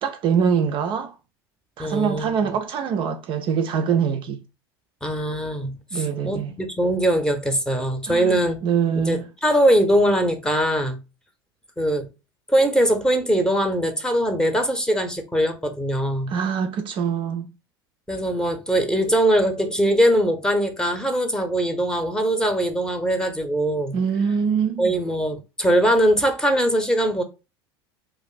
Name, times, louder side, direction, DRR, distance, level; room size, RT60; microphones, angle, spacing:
voice 1, 0.0-1.1 1.8-4.4 5.9-6.6 8.1-9.2 16.3-17.5 23.9-25.0, right 7 dB, 40° right, 0.4 m, -24 dB
voice 2, 1.8-2.5 5.0-8.6 9.0-11.0 11.8-12.1 12.5-16.3 18.1-24.0 24.8-27.2, right 1 dB, 5° left, 0.7 m, -21 dB
2.5 x 2.4 x 3.8 m
figure-of-eight pair, 75°, 13 cm